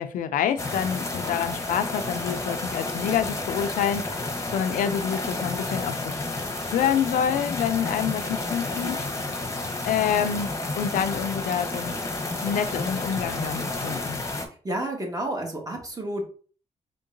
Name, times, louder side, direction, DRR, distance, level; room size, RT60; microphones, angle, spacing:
voice 1, 0.0-4.1 4.5-6.2 6.7-9.1 9.8-12.0 12.4-14.2, left 8 dB, 80° left, 0.4 m, -27 dB
sound 1, 0.6-14.5, left 2 dB, 20° left, 0.9 m, -31 dB
voice 2, 14.6-16.3, right 1 dB, 25° right, 1.4 m, -30 dB
3.8 x 3.7 x 2.5 m
cardioid pair, 70°, 14 cm